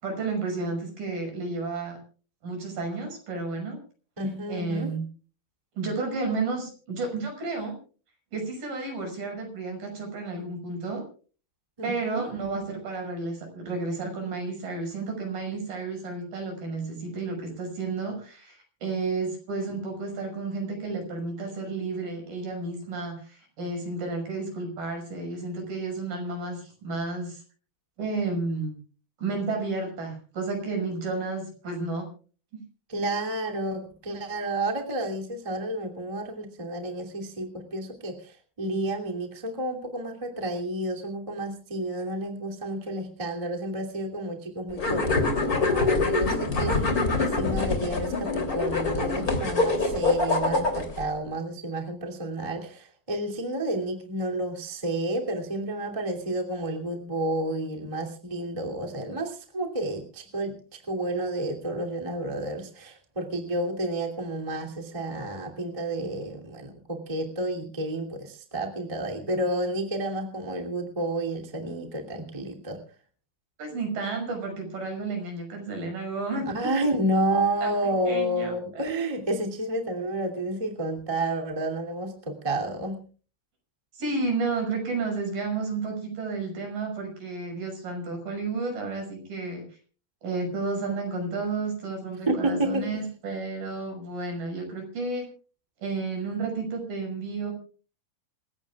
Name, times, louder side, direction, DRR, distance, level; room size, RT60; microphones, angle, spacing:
voice 1, 0.0-2.0 2.4-3.8 4.5-5.0 5.8-7.8 8.3-11.0 11.8-27.4 28.0-28.8 29.2-32.1 32.5-32.6 73.6-76.5 77.6-77.8 78.1-78.8 83.9-89.6 90.2-95.3 95.8-97.5, right 3 dB, 60° right, 3 dB, 7.7 m, -32 dB
voice 2, 4.2-4.9 11.8-12.3 32.9-72.8 76.5-83.0 92.3-93.0, right 1 dB, 10° right, 1 dB, 2.0 m, -30 dB
sound 1, 44.8-51.0, left 3 dB, 25° left, 3.0 m, -25 dB
27.0 x 16.5 x 2.4 m, 0.39 s
omnidirectional pair, 4.6 m